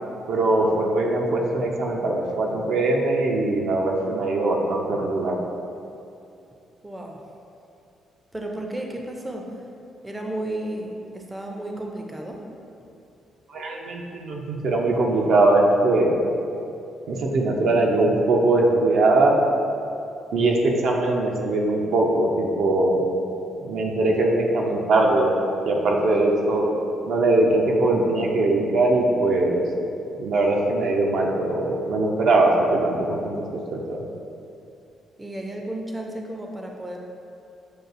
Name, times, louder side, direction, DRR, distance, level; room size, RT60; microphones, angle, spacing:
voice 1, 0.3-5.4 13.5-16.2 17.1-19.4 20.3-23.0 23.6-25.3 25.6-26.7 27.1-29.7 30.2-33.4 33.7-34.0, right 2 dB, 70° right, 0 dB, 0.5 m, -21 dB
voice 2, 6.8-7.3 8.3-9.5 10.0-12.4 35.2-37.0, right 1 dB, 15° right, 1 dB, 0.4 m, -33 dB
6.3 x 2.3 x 2.5 m, 2.6 s
cardioid pair, 90°, 0 cm